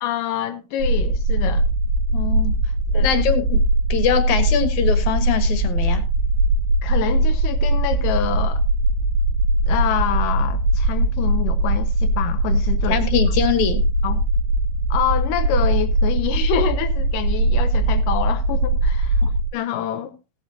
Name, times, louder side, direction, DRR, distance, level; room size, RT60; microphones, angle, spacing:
voice 1, 0.0-1.7 2.9-3.3 6.8-8.6 9.7-13.0 14.0-14.2 14.9-19.2 19.5-20.2, left 10 dB, 80° left, 1.9 m, -26 dB
sound 1, 0.8-19.5, right 2 dB, 80° right, 3.3 m, -20 dB
voice 2, 2.1-2.6 2.9-3.6 3.9-6.0 12.9-13.8 19.2-19.3, left 8 dB, 55° left, 2.4 m, -22 dB
16.5 x 10.5 x 2.8 m
omnidirectional pair, 4.7 m